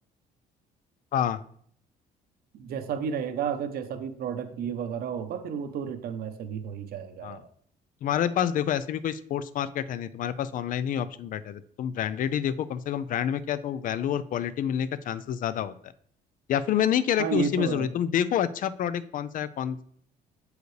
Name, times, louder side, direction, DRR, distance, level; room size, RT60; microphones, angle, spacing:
voice 1, 2.6-7.5 17.2-17.9, right 7 dB, 65° right, 8 dB, 0.8 m, -32 dB
voice 2, 8.0-15.7 16.5-19.8, left 9 dB, 50° left, 15 dB, 0.4 m, -28 dB
7.9 x 4.7 x 3.2 m, 0.62 s
cardioid pair, 110°, 17 cm